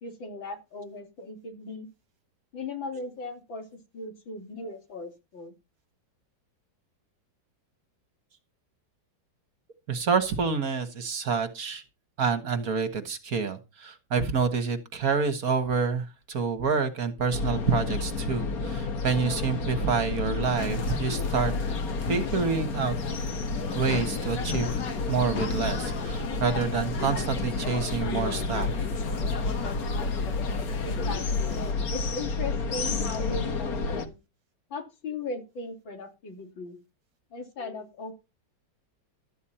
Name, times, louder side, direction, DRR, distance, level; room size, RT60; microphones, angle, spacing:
voice 1, 0.0-1.9 2.5-3.7 3.9-5.5 30.8-34.2 34.7-36.8 37.3-38.1, left 3 dB, 85° left, 4 dB, 3.7 m, -38 dB
voice 2, 9.9-11.8 12.2-21.5 22.1-23.0 23.7-28.7, right 5 dB, 50° right, 10 dB, 1.8 m, -28 dB
sound 1, 17.3-34.1, left 3 dB, 50° left, 1.8 m, -30 dB
sound 2, 20.6-31.7, left 5 dB, 70° left, 2.3 m, -37 dB
13.0 x 9.5 x 4.3 m, 0.27 s
omnidirectional pair, 2.0 m